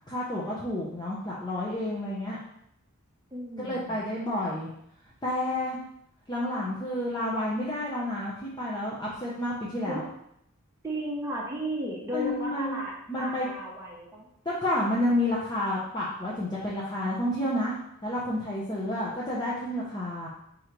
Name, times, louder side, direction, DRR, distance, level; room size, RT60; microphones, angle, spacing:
voice 1, 0.1-2.4 3.6-4.7 5.2-5.8 6.3-10.0 12.1-12.8 13.1-13.5 14.4-17.8 18.0-20.3, left 1 dB, 20° left, -6 dB, 0.6 m, -30 dB
voice 2, 3.3-4.1 9.9-10.0 10.8-14.3, right 1 dB, 15° right, -5 dB, 0.8 m, -34 dB
3.8 x 3.0 x 4.5 m, 0.75 s
head